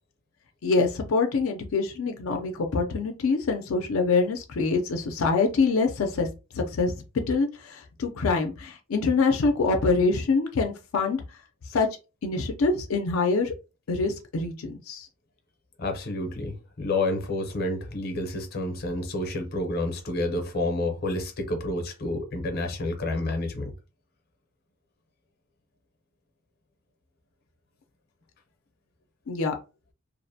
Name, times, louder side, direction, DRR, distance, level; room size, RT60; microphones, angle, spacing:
voice 1, 0.6-6.3 6.5-6.9 7.3-11.2 11.7-11.9 12.2-13.5 13.9-15.1 29.3-29.6, left 4 dB, 85° left, 0.5 m, -25 dB
voice 2, 15.8-23.7, left 2 dB, 50° left, 0.6 m, -29 dB
2.5 x 2.1 x 2.6 m
head